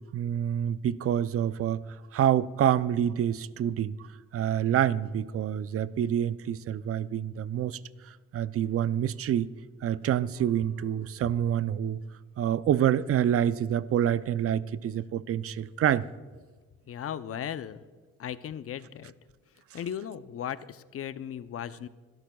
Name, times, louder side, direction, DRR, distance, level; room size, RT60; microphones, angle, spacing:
voice 1, 0.1-1.8 2.1-4.0 4.3-7.8 8.3-9.5 9.8-12.0 12.4-16.1, right 10 dB, 50° right, 0.5 m, -27 dB
voice 2, 16.9-17.8 18.2-19.1 19.7-21.9, left 9 dB, 50° left, 0.6 m, -36 dB
25.5 x 12.0 x 2.3 m
cardioid pair, 90°, 30 cm